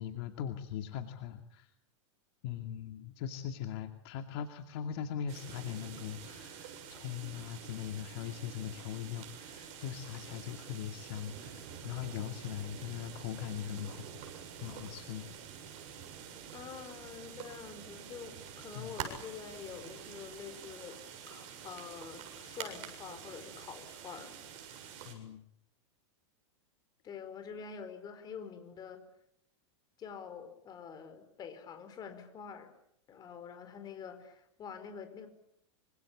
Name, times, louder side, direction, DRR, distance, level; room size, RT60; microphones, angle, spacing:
voice 1, 0.0-1.7 2.4-14.1 14.6-15.3 18.7-19.0 25.0-25.4, left 9 dB, 55° left, 6 dB, 2.5 m, -40 dB
sound 1, 5.3-25.1, right 8 dB, 45° right, 7.4 m, -47 dB
voice 2, 16.5-21.0 21.3-24.4 27.0-29.0 30.0-32.7 33.1-35.3, left 7 dB, 25° left, 9 dB, 4.8 m, -46 dB
26.0 x 25.5 x 8.7 m, 0.77 s
supercardioid pair, 150°, 16 cm